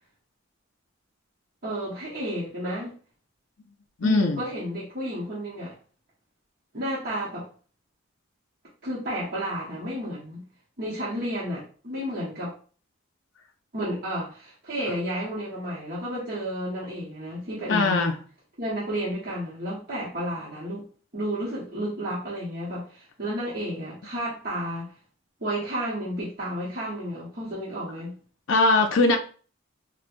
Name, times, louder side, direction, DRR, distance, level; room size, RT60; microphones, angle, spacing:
voice 1, 1.6-2.9 4.0-5.7 6.7-7.5 8.8-10.5 10.8-12.5 13.7-18.2 18.6-20.9 21.1-24.9 25.4-28.2, equal, 45° right, 1.0 m, -32 dB
voice 2, 4.0-4.4 17.7-18.2 28.5-29.2, left 3 dB, 70° left, 0.5 m, -20 dB
4.3 x 2.2 x 2.5 m
head